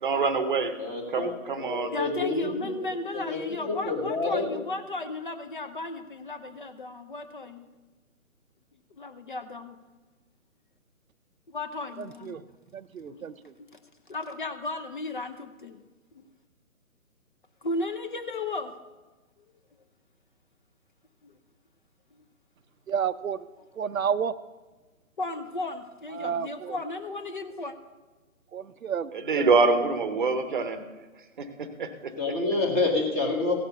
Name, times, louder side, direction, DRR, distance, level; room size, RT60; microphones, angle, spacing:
voice 1, 0.0-0.8 1.1-1.9 29.3-30.8 31.4-32.1, right 4 dB, 35° right, 11 dB, 0.8 m, -25 dB
voice 2, 0.8-2.7 3.1-4.5 32.2-33.6, left 3 dB, 10° left, 1 dB, 1.0 m, -28 dB
voice 3, 1.9-7.7 9.0-9.8 11.5-12.3 13.0-13.2 13.6-13.8 14.1-15.8 16.1-16.2 17.6-18.8 21.2-21.3 22.1-22.2 25.2-27.8, left 2 dB, 35° left, 8 dB, 0.6 m, -35 dB
voice 4, 12.0-12.4 12.7-13.5 22.9-23.5 23.7-24.3 26.1-26.8 28.5-29.5, right 7 dB, 70° right, 14 dB, 0.6 m, -31 dB
16.0 x 6.6 x 6.7 m, 1.2 s
figure-of-eight pair, 145°, 43 cm